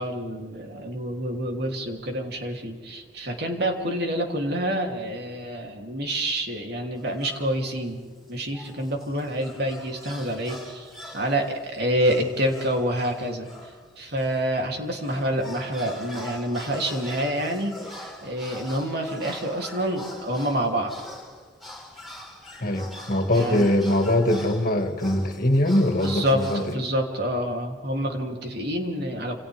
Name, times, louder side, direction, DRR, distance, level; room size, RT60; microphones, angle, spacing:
voice 1, 0.0-8.0 8.3-13.5 14.0-20.9 23.3-23.7 26.0-29.4, equal, 60° right, 1 dB, 3.3 m, -27 dB
sound 1, 7.0-7.8 8.3-14.4 14.8-26.7, left 1 dB, ahead, 4.7 m, -43 dB
voice 2, 22.6-26.6, left 1 dB, 50° left, 5 dB, 2.3 m, -22 dB
29.5 x 28.5 x 3.7 m, 1.5 s
head